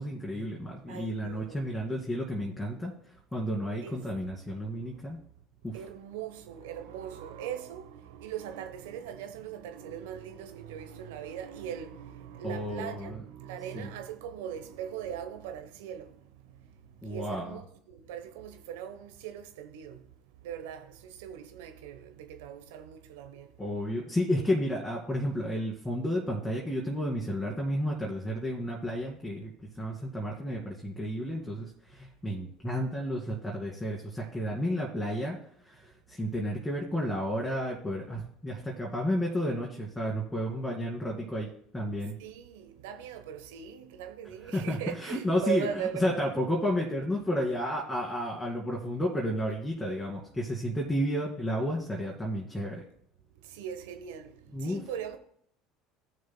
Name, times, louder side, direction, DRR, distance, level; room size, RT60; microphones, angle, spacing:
voice 1, 0.0-2.9 3.3-5.2 5.6-5.8 12.4-13.2 13.7-13.9 17.0-17.6 23.6-35.4 35.6-42.2 44.5-45.7 46.0-52.8 54.5-54.8, equal, 10° left, 2.3 m, -32 dB
voice 2, 0.9-1.8 3.6-4.1 4.9-5.0 5.7-16.5 17.0-20.0 20.4-23.5 42.2-46.1 53.4-55.2, right 9 dB, 80° right, 1.0 m, -40 dB
16.0 x 6.6 x 2.2 m
hypercardioid pair, 80°, 0 cm